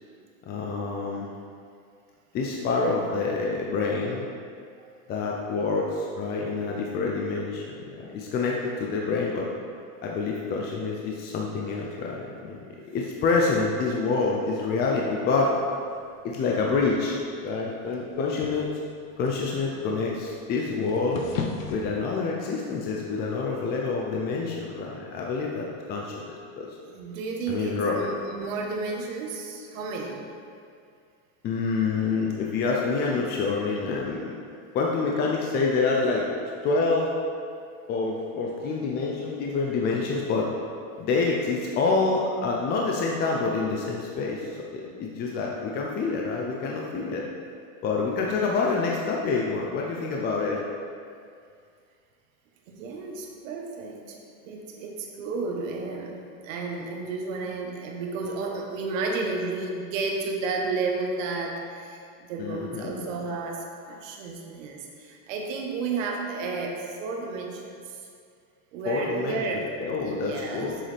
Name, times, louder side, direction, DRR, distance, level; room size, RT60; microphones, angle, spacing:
voice 1, 0.5-1.3 2.3-4.3 5.1-9.5 10.0-12.6 12.9-15.5 16.2-18.7 19.2-21.2 21.7-26.7 27.5-28.0 31.4-34.3 34.7-36.3 36.6-37.1 37.9-40.5 41.0-47.2 47.8-50.6 62.4-63.1 68.9-69.4 69.8-70.8, left 4 dB, 25° left, -2 dB, 0.6 m, -27 dB
sound 1, 15.0-21.9, left 6 dB, 80° left, 1.0 m, -39 dB
voice 2, 26.8-30.3 52.7-54.2 54.4-56.1 56.4-68.0 68.7-69.7 70.0-70.7, right 3 dB, 70° right, 1 dB, 1.3 m, -32 dB
7.6 x 6.5 x 3.4 m, 2.3 s
supercardioid pair, 150°, 40 cm